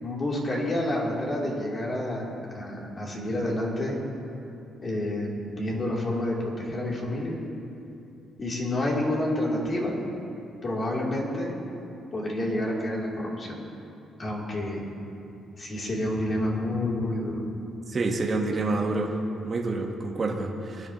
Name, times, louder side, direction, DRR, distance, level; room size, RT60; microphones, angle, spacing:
voice 1, 0.0-4.0 4.8-7.4 8.4-10.0 10.6-11.6 12.1-13.6 14.2-14.8 15.6-17.4, left 1 dB, 40° left, -4 dB, 3.4 m, -29 dB
voice 2, 17.9-19.1 19.4-20.9, right 3 dB, 35° right, 0 dB, 1.5 m, -28 dB
22.5 x 10.5 x 3.1 m, 2.7 s
cardioid pair, 90°, 0 cm